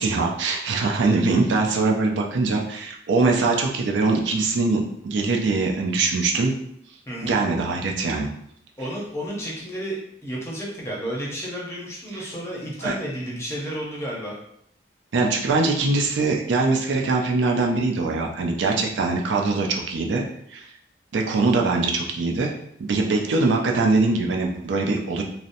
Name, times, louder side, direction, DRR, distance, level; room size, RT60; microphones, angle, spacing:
voice 1, 0.0-6.5 7.2-8.3 12.8-13.0 15.1-20.2 20.5-20.7 21.1-22.5 22.8-25.2, right 3 dB, 85° right, 1 dB, 0.4 m, -22 dB
voice 2, 7.1-7.4 8.8-14.4, equal, 15° left, -5 dB, 0.6 m, -32 dB
2.7 x 2.0 x 2.5 m, 0.71 s
head